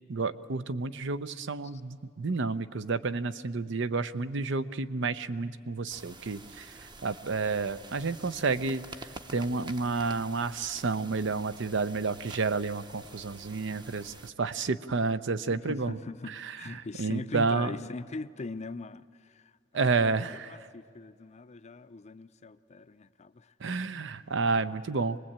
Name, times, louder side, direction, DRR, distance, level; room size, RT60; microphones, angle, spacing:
voice 1, 0.1-8.8 9.3-16.0 16.4-16.5 17.0-17.8 19.7-20.5 23.6-25.2, right 4 dB, 65° right, 13 dB, 0.7 m, -30 dB
sound 1, 5.9-14.3, right 3 dB, 25° right, 0.8 m, -48 dB
voice 2, 15.5-20.1 20.5-23.5, left 3 dB, 35° left, 13 dB, 0.5 m, -41 dB
25.0 x 20.0 x 8.8 m, 2.2 s
head